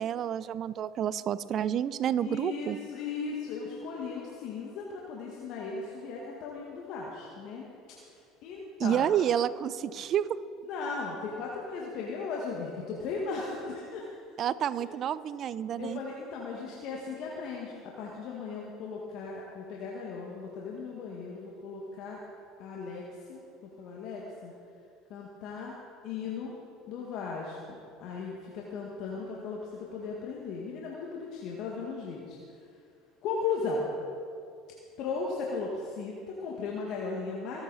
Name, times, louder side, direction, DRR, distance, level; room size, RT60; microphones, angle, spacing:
voice 1, 0.0-2.8 8.8-10.3 14.4-16.0, right 9 dB, 50° right, 17 dB, 0.5 m, -29 dB
voice 2, 2.2-7.7 8.4-9.1 10.7-14.1 15.8-22.2 22.6-23.0 23.3-24.5 25.1-25.7 26.0-26.6 26.9-32.6 33.2-33.9 35.0-37.6, left 4 dB, 60° left, -3 dB, 1.8 m, -37 dB
23.5 x 8.1 x 4.2 m, 2.4 s
hypercardioid pair, 70°, 0 cm